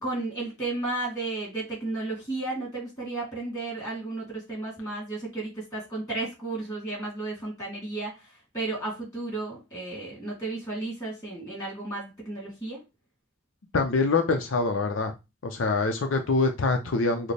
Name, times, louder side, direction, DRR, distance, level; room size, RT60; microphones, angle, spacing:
voice 1, 0.0-8.2 8.5-12.8, right 2 dB, 20° left, -4 dB, 2.7 m, -33 dB
voice 2, 13.7-15.1 15.4-17.3, left 3 dB, 80° left, 5 dB, 0.6 m, -25 dB
6.4 x 2.1 x 3.3 m, 0.25 s
head